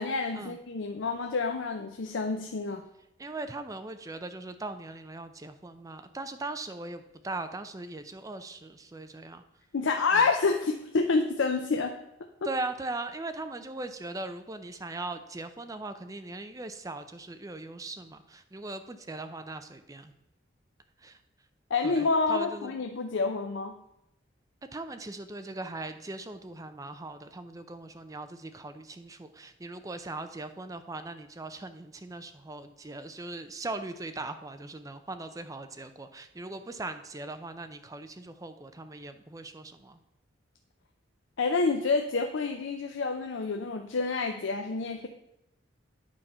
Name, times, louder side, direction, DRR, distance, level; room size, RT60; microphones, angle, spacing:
voice 1, 0.0-2.8 9.7-12.0 12.4-12.5 21.7-23.7 41.4-45.1, left 4 dB, 70° left, 5 dB, 0.5 m, -28 dB
voice 2, 3.2-9.4 10.1-10.3 12.4-20.1 21.0-21.2 21.8-22.8 24.7-40.0, right 2 dB, 15° right, 9 dB, 0.5 m, -39 dB
8.9 x 4.3 x 5.4 m, 0.86 s
head